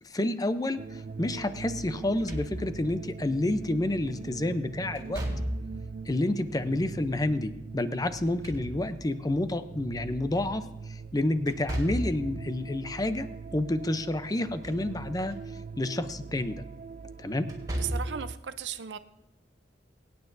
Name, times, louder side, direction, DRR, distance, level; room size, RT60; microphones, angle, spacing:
voice 1, 0.0-5.2 6.1-13.3 13.5-15.4 15.8-16.6 17.2-17.5, left 1 dB, 20° left, 11 dB, 0.6 m, -29 dB
sound 1, 0.8-18.3, right 5 dB, 45° right, 0.3 m, -42 dB
Slam / Thump thud, 2.0-2.9 5.0-5.9 8.1-9.2 11.5-12.3 14.3-14.9 15.3-15.4 17.4-18.2, equal, 20° right, 2.8 m, -34 dB
voice 2, 17.8-19.0, right 8 dB, 80° right, 12 dB, 0.6 m, -36 dB
23.0 x 9.4 x 2.6 m, 0.99 s
head